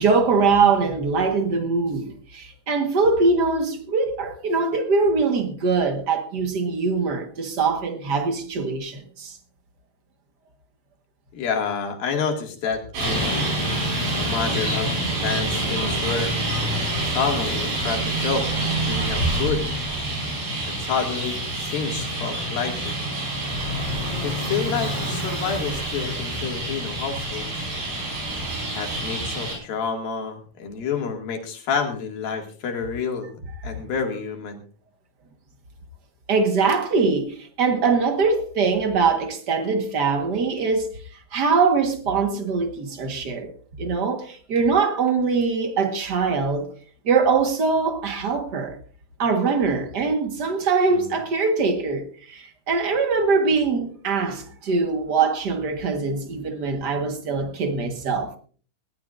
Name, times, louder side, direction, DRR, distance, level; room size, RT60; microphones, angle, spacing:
voice 1, 0.0-9.4 36.3-40.9 41.3-43.5 43.8-46.7 47.0-48.8 49.2-58.3, right 4 dB, 45° right, 1.3 m, -22 dB
voice 2, 11.3-13.3 14.1-14.9 15.2-16.3 17.1-19.7 20.6-23.0 24.2-27.7 28.7-34.6 50.9-51.1, left 6 dB, 85° left, 4.1 m, -29 dB
Traffic noise roadway noise, 12.9-29.6, right 1 dB, 80° right, 7.2 m, -26 dB
19.5 x 16.0 x 2.6 m
omnidirectional pair, 4.0 m